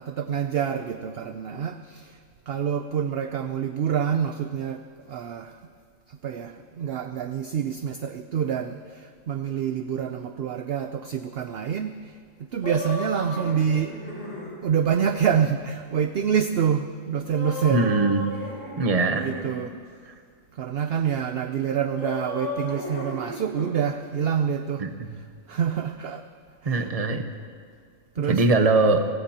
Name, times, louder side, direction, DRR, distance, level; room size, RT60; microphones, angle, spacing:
voice 1, 0.0-2.2 2.5-5.6 6.1-14.0 14.6-17.9 19.2-19.8 20.5-24.8 25.5-26.2 26.6-26.9 28.2-28.4, right 8 dB, 60° right, 8 dB, 0.7 m, -27 dB
sound 1, 12.6-14.5 17.3-19.5 22.0-23.7, left 2 dB, 70° left, 5.4 m, -34 dB
voice 2, 17.7-18.2 18.8-19.3 24.8-25.1 26.6-27.2 28.3-29.0, right 3 dB, 30° right, 7 dB, 0.9 m, -21 dB
29.0 x 16.0 x 2.9 m, 2.1 s
omnidirectional pair, 1.4 m